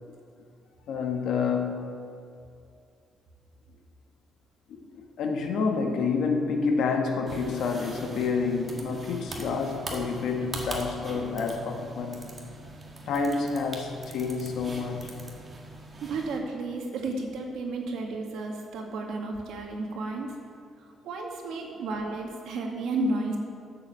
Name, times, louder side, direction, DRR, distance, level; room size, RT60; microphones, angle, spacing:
voice 1, 0.9-1.9 4.7-12.3 13.1-15.1, left 4 dB, 70° left, 3 dB, 1.6 m, -28 dB
sound 1, 7.3-16.4, right 2 dB, 25° right, 1.8 m, -41 dB
voice 2, 16.0-20.3 21.0-23.4, right 2 dB, 80° right, 1 dB, 2.0 m, -32 dB
12.0 x 7.6 x 7.5 m, 2.4 s
cardioid pair, 160°, 0 cm